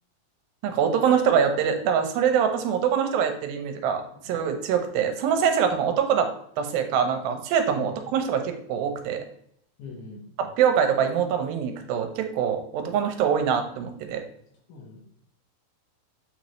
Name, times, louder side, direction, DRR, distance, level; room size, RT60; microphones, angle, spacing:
voice 1, 0.6-6.3 6.6-9.2 10.4-14.2, right 7 dB, 85° right, 6 dB, 2.6 m, -24 dB
voice 2, 9.8-10.2 14.4-15.0, left 4 dB, 65° left, -1 dB, 2.8 m, -43 dB
7.3 x 5.1 x 3.1 m, 0.69 s
omnidirectional pair, 4.1 m